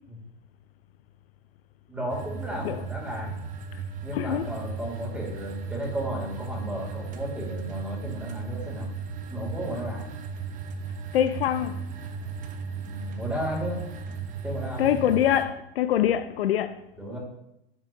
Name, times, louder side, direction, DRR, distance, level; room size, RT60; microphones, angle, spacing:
voice 1, 1.9-3.4 4.0-8.9 9.3-10.1 12.8-13.8 14.4-14.9 17.0-17.2, equal, 5° right, 2.2 m, -34 dB
sound 1, 2.1-15.4, right 5 dB, 25° right, 0.6 m, -36 dB
voice 2, 4.1-4.5 11.1-11.9 14.8-16.8, left 11 dB, 75° left, 0.5 m, -25 dB
7.4 x 5.7 x 2.6 m
hypercardioid pair, 105°, 30 cm